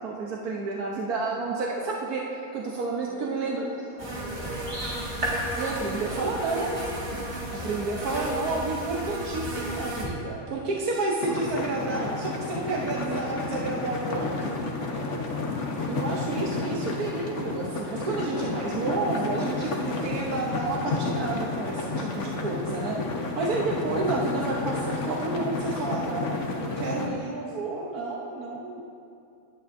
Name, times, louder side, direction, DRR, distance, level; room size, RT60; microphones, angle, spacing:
voice 1, 0.0-2.2 2.5-3.6 5.5-6.9 7.5-14.6 15.9-23.0 23.3-28.8, right 3 dB, 90° right, -3 dB, 1.5 m, -30 dB
voice 2, 3.0-5.4, equal, 10° left, -8 dB, 1.6 m, -44 dB
sound 1, 4.0-10.0, right 1 dB, 30° right, 2.1 m, -32 dB
sound 2, 11.2-27.1, left 3 dB, 55° left, 1.4 m, -31 dB
17.0 x 11.0 x 2.7 m, 2.4 s
omnidirectional pair, 1.5 m